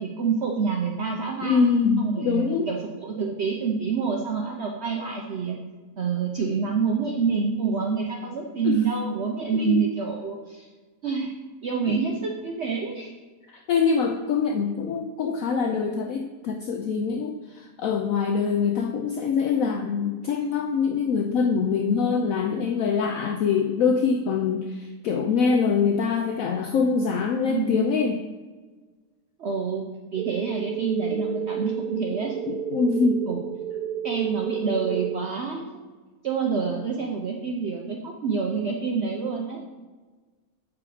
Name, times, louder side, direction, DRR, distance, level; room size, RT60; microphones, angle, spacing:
voice 1, 0.0-1.6 2.0-5.6 6.0-10.7 11.0-11.3 11.6-13.1 27.5-27.9 29.4-29.8 30.1-32.4 33.3-33.4 34.0-35.8 36.2-39.6, right 5 dB, 55° right, 0 dB, 0.8 m, -27 dB
voice 2, 1.4-2.7 8.6-8.8 9.5-9.9 13.5-28.2 32.5-33.3, left 5 dB, 70° left, 4 dB, 0.9 m, -24 dB
sound 1, 30.2-35.1, right 9 dB, 75° right, 1.0 m, -31 dB
8.5 x 4.8 x 4.8 m, 1.3 s
omnidirectional pair, 1.7 m